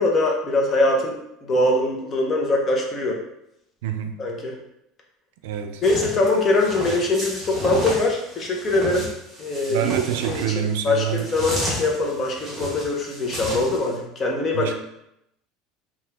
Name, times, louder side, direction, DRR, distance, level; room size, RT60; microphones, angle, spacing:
voice 1, 0.0-3.2 4.2-4.5 5.8-9.1 9.4-9.8 10.3-14.7, left 2 dB, 25° left, 0 dB, 0.6 m, -22 dB
voice 2, 3.8-4.2 5.4-5.8 9.7-11.3 14.5-14.7, right 9 dB, 90° right, 6 dB, 0.4 m, -26 dB
sound 1, 5.8-13.9, equal, 20° right, 1.2 m, -32 dB
2.9 x 2.3 x 3.4 m, 0.81 s
cardioid pair, 150°, 0 cm